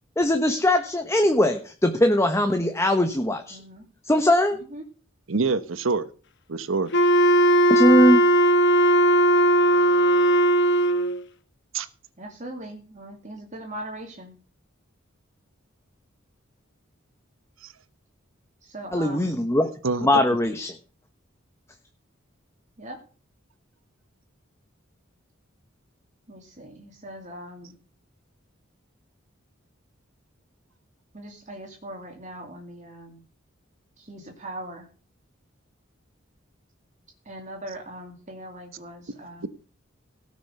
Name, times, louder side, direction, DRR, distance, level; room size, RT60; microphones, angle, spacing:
voice 1, 0.2-3.6 4.0-4.6 7.7-8.2 18.9-19.7 20.0-20.7, left 1 dB, 15° left, 6 dB, 1.2 m, -20 dB
voice 2, 3.5-3.8 4.5-4.8 12.2-14.4 18.6-19.4 22.8-23.0 26.3-27.8 31.1-33.2 34.0-34.9 37.2-39.5, right 1 dB, 40° right, 2 dB, 2.6 m, -40 dB
voice 3, 5.3-6.1 6.5-6.9 11.7-11.9 17.6-17.7 19.8-20.2 39.4-39.5, right 4 dB, 75° right, 14 dB, 1.1 m, -25 dB
Wind instrument woodwind instrument, 6.9-11.2, right 1 dB, 60° left, 1.4 m, -18 dB
17.5 x 6.2 x 6.8 m, 0.39 s
head